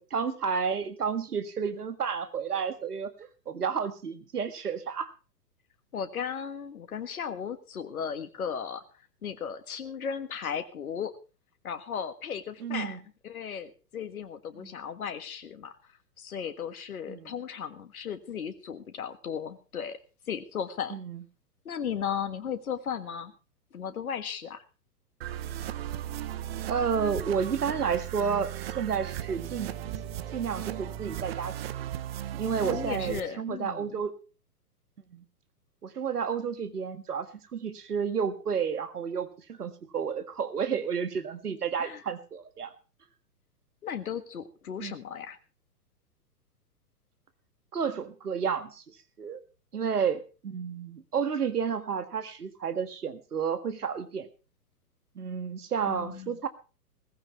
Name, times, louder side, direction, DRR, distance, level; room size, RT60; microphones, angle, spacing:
voice 1, 0.0-5.1 12.6-13.0 14.6-14.7 17.1-17.3 20.9-21.2 26.7-29.7 30.3-31.5 32.3-34.1 35.1-35.2 35.8-37.3 37.5-42.7 44.8-45.0 47.7-48.8 49.2-49.4 49.7-54.3 55.2-56.5, right 6 dB, 65° right, 11 dB, 1.8 m, -31 dB
voice 2, 5.9-8.8 9.2-11.1 11.6-15.7 16.2-20.0 20.3-21.0 21.6-23.3 23.7-24.6 32.6-34.0 41.8-42.0 43.8-45.4 55.9-56.4, left 7 dB, 60° left, 9 dB, 1.7 m, -36 dB
sound 1, 25.2-33.2, right 12 dB, 40° right, 1.1 m, -36 dB
18.0 x 15.0 x 3.1 m, 0.34 s
figure-of-eight pair, 115°, 48 cm